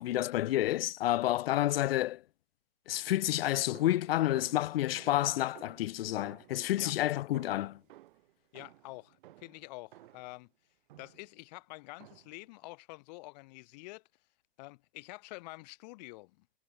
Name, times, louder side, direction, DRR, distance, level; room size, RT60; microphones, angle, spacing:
voice 1, 0.0-2.2 2.9-7.8, left 14 dB, 70° left, 0.5 m, -29 dB
sound 1, 3.7-10.4 10.9-11.4 12.0-12.5, right 15 dB, 55° right, 2.9 m, -56 dB
voice 2, 8.5-10.5 11.0-14.0 14.6-16.5, left 23 dB, 45° left, 1.9 m, -48 dB
hypercardioid pair, 135°, 30 cm